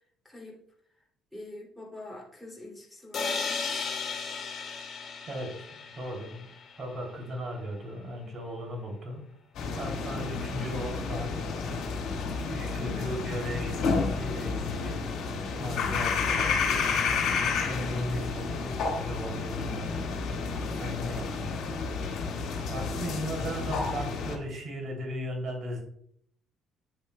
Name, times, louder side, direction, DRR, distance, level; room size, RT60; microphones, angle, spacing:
voice 1, 0.2-0.6 1.3-3.7 10.4-10.8 12.7-13.4, left 2 dB, 5° left, -5 dB, 2.6 m, -45 dB
sound 1, 3.1-6.9, left 5 dB, 45° left, 1.9 m, -35 dB
voice 2, 5.3-6.5 6.8-9.2 9.7-11.8 12.5-15.0 15.6-20.2 20.5-22.3 22.7-25.8, equal, 45° right, 2 dB, 2.8 m, -37 dB
sound 2, 9.5-24.3, left 5 dB, 65° left, 1.9 m, -31 dB
9.5 x 7.9 x 2.2 m, 0.66 s
cardioid pair, 110°, 0 cm